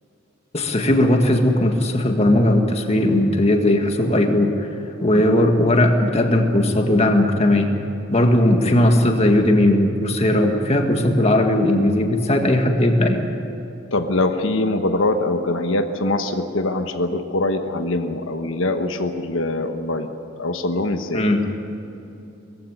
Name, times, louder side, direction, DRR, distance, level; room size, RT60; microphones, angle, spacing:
voice 1, 0.5-4.7 5.0-7.7 8.1-13.3 21.1-21.4, left 1 dB, 35° left, 4 dB, 1.9 m, -18 dB
voice 2, 13.9-20.1 20.4-21.3, left 2 dB, 85° left, 6 dB, 1.2 m, -23 dB
20.5 x 15.0 x 9.6 m, 2.9 s
head